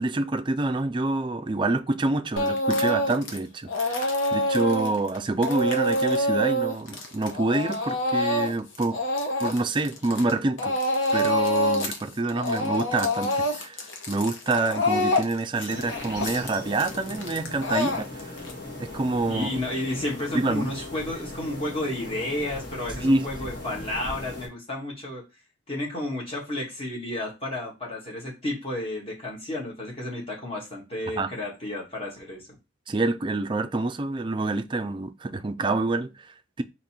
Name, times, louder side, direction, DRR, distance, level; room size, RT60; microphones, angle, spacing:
voice 1, 0.0-9.0 9.4-10.7 11.1-13.8 14.1-18.3 18.8-19.5 20.3-20.7 23.0-23.3 31.2-31.3 32.9-36.6, right 2 dB, 25° right, 0.4 m, -27 dB
Speech / Crying sobbing, 2.4-3.4 3.7-10.3 10.6-12.0 12.3-18.5, left 1 dB, 80° left, 1.0 m, -26 dB
sound 1, 15.7-24.5, left 2 dB, 55° left, 1.8 m, -38 dB
voice 2, 19.3-25.2 25.7-32.6, left 1 dB, 30° left, 1.8 m, -32 dB
4.0 x 3.0 x 4.4 m
head